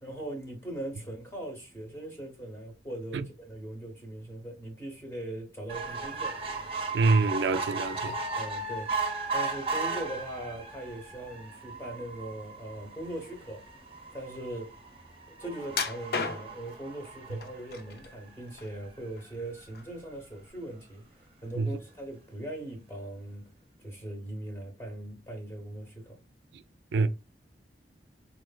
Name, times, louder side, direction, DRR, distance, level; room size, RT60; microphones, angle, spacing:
voice 1, 0.0-6.4 8.3-9.0 9.3-13.6 14.1-14.7 15.4-23.5 23.8-26.2, right 1 dB, 15° left, 0.8 m, -40 dB
sound 1, 5.7-18.3 18.9-19.0 19.2-19.3 19.6-19.7, right 3 dB, 30° right, 0.6 m, -36 dB
voice 2, 6.9-8.2 21.6-21.7 26.5-26.6 26.9-27.1, right 3 dB, 80° right, 0.4 m, -25 dB
sound 2, 15.7-16.7 17.4-18.1 18.5-19.4 19.7-19.9 20.5-20.6, left 5 dB, 55° left, 0.5 m, -34 dB
4.1 x 3.1 x 2.2 m
head